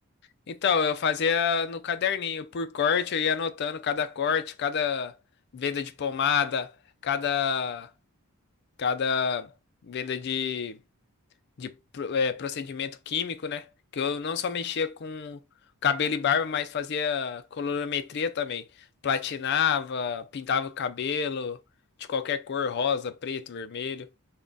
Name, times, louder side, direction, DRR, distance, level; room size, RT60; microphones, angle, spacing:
voice 1, 0.5-5.1 5.5-6.7 7.0-7.9 8.8-9.5 9.9-10.8 11.6-13.7 13.9-15.4 15.8-18.6 19.0-21.6 22.1-24.1, left 6 dB, 50° left, 0.4 m, -28 dB
3.6 x 2.3 x 3.8 m
head